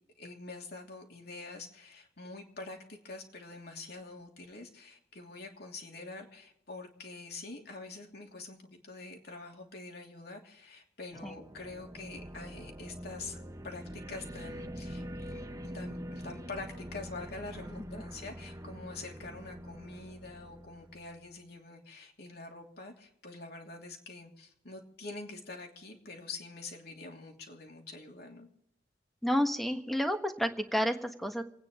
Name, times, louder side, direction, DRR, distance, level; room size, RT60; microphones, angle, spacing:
voice 1, 0.2-13.4 13.6-28.5, left 3 dB, 60° left, 1 dB, 2.9 m, -46 dB
sound 1, 11.1-21.3, equal, 20° right, 0.8 m, -44 dB
voice 2, 29.2-31.4, equal, ahead, 5 dB, 1.4 m, -30 dB
28.5 x 9.5 x 3.8 m, 0.80 s
head